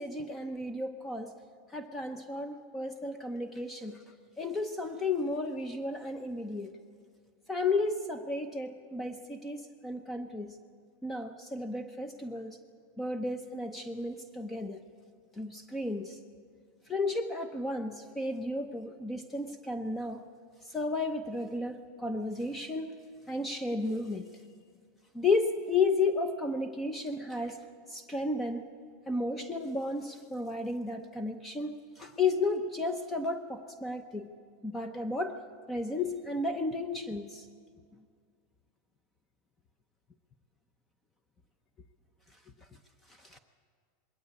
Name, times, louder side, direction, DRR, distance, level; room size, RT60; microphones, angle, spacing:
voice 1, 0.0-1.3 1.7-4.0 4.4-6.7 7.5-10.5 11.0-12.6 13.0-14.8 15.4-16.2 16.9-20.2 20.7-23.0 23.3-24.3 25.1-27.6 27.9-28.6 29.1-34.3 34.6-35.4 35.7-37.5 43.3-43.4, left 3 dB, 10° left, 8 dB, 0.7 m, -33 dB
21.0 x 17.5 x 8.4 m, 2.1 s
supercardioid pair, 155°, 0 cm